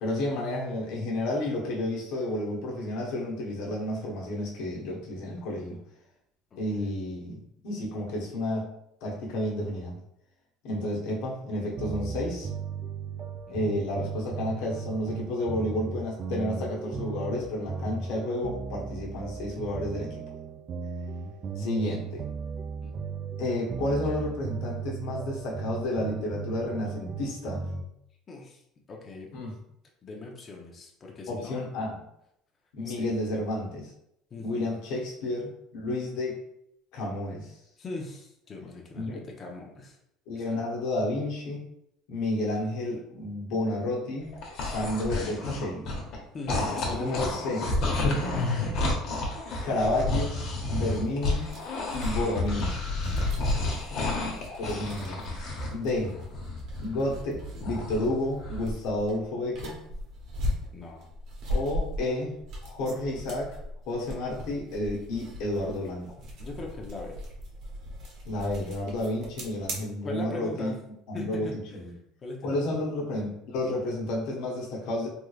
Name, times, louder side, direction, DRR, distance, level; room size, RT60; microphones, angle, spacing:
voice 1, 0.0-5.8 6.6-10.0 10.6-12.5 13.5-20.2 21.6-22.3 23.4-27.6 29.3-29.5 31.3-32.0 32.7-33.9 34.4-36.4 36.9-37.6 38.9-39.2 40.3-41.6 42.1-44.3 44.6-45.9 46.9-47.6 48.5-49.1 49.6-50.4 50.7-51.5 51.9-52.8 53.6-53.7 54.6-55.2 55.7-56.1 56.8-59.8 61.5-62.3 62.6-63.6 63.9-66.1 68.3-70.7 71.1-71.9 72.4-75.1, left 1 dB, 75° left, -3 dB, 1.1 m, -31 dB
voice 2, 6.5-6.9 13.5-13.7 22.8-23.2 28.3-28.6 28.9-29.3 30.0-31.6 32.8-33.1 34.3-34.7 37.8-40.0 40.3-40.6 46.3-48.4 53.5-54.1 60.7-61.1 66.4-67.2 70.0-70.8 71.1-71.6 72.2-72.6, left 3 dB, 30° left, 0 dB, 0.6 m, -40 dB
sound 1, 11.8-27.8, right 5 dB, 35° right, 0.3 m, -36 dB
sound 2, 44.2-46.2 46.5-55.7 56.0-58.0 58.4-58.6, left 2 dB, 55° left, 1.0 m, -30 dB
sound 3, 50.9-69.8, left 1 dB, 55° right, 1.0 m, -39 dB
3.5 x 3.1 x 2.4 m, 0.77 s
cardioid pair, 140°, 0 cm